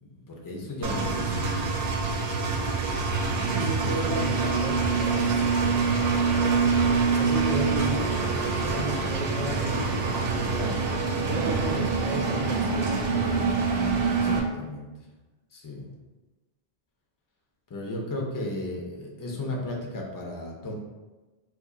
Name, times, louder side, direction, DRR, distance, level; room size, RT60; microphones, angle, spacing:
voice 1, 0.0-1.7 3.8-4.1 10.3-10.9 14.0-15.1 15.5-15.9 17.7-20.7, left 1 dB, 30° left, -1 dB, 0.4 m, -35 dB
Engine, 0.8-14.4, right 4 dB, 75° right, 0.8 m, -25 dB
voice 2, 3.5-6.0 7.1-9.9 11.2-13.2, right 1 dB, 40° right, 0 dB, 0.5 m, -33 dB
3.0 x 2.3 x 3.7 m, 1.2 s
omnidirectional pair, 1.1 m